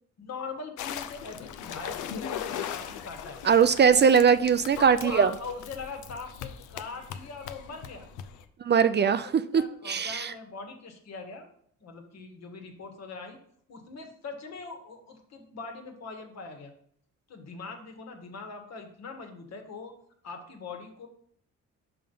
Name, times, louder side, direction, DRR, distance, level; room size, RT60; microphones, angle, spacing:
voice 1, 0.2-3.4 4.8-8.1 9.5-11.5 11.8-13.4 13.7-16.7 17.3-19.9 20.2-21.1, left 4 dB, 60° left, 4 dB, 1.6 m, -41 dB
sound 1, 0.8-8.4, left 9 dB, 85° left, 0.6 m, -39 dB
voice 2, 3.4-5.3 8.6-9.3 9.5-10.3, right 6 dB, 35° right, 12 dB, 0.4 m, -21 dB
5.5 x 5.5 x 5.4 m, 0.64 s
cardioid pair, 90°, 30 cm